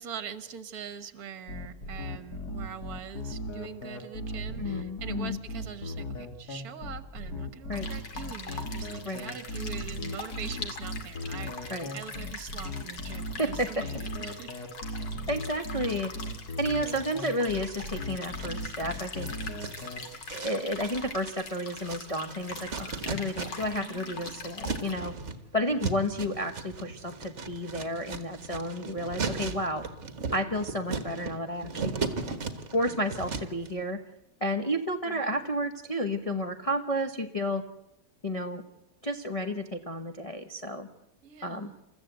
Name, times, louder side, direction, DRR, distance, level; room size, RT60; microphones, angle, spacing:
voice 1, 0.0-14.7 23.8-24.3 35.0-35.4 41.2-41.8, right 8 dB, 60° right, 12 dB, 1.7 m, -43 dB
sound 1, 1.5-20.0, left 1 dB, 60° left, 2.5 m, -37 dB
voice 2, 4.6-5.4 7.7-7.9 9.0-9.2 11.7-11.9 13.4-13.8 15.3-16.1 16.6-19.3 20.3-25.1 25.5-29.9 30.3-31.9 32.7-34.0 34.4-37.6 38.2-38.6 39.0-40.9 41.4-41.7, equal, 25° left, 4 dB, 0.9 m, -31 dB
sound 2, 7.7-24.9, left 4 dB, 80° left, 2.9 m, -42 dB
sound 3, 17.2-18.0 18.4-23.9 24.1-33.7, right 4 dB, 45° right, 1.7 m, -37 dB
28.5 x 14.0 x 8.0 m, 0.89 s
omnidirectional pair, 1.9 m